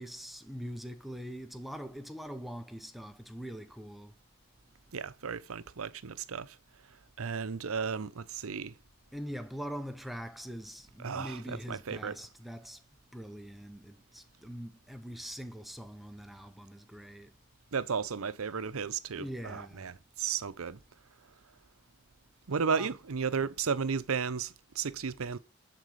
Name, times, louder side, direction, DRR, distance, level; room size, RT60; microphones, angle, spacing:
voice 1, 0.0-4.2 9.1-12.8 13.1-17.4 19.2-19.9 22.8-22.9, equal, ahead, 0.6 m, -43 dB
voice 2, 4.9-6.5 7.2-8.7 11.0-12.1 17.7-19.9 20.2-20.8 22.5-25.4, right 6 dB, 75° right, 0.7 m, -34 dB
10.5 x 4.1 x 6.4 m
head